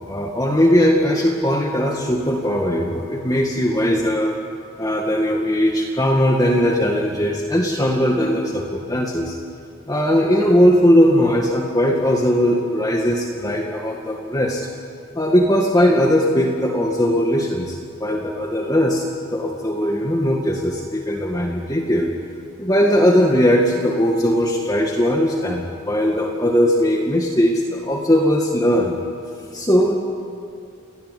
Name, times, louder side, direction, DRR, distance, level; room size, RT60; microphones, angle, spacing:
voice 1, 0.1-4.4 4.8-9.4 9.9-14.7 15.2-22.1 22.6-29.0 29.5-29.9, equal, 15° left, 0 dB, 2.0 m, -19 dB
29.0 x 20.0 x 9.9 m, 2.6 s
head